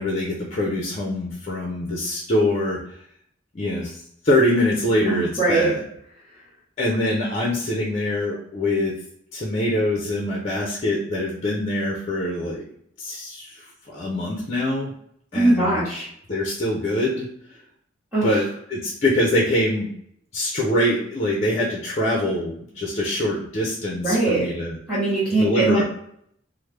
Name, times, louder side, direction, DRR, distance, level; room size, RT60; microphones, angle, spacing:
voice 1, 0.0-2.8 3.5-5.8 6.8-8.9 9.3-12.6 13.0-14.9 15.3-15.8 16.3-17.6 18.2-18.4 18.7-19.9 20.3-24.8 25.4-25.8, left 1 dB, 35° left, -2 dB, 0.5 m, -24 dB
voice 2, 5.1-5.7 15.3-16.1 18.1-18.3 24.0-24.5 24.9-25.8, right 2 dB, 5° right, -13 dB, 0.9 m, -21 dB
3.1 x 2.0 x 3.1 m, 0.69 s
head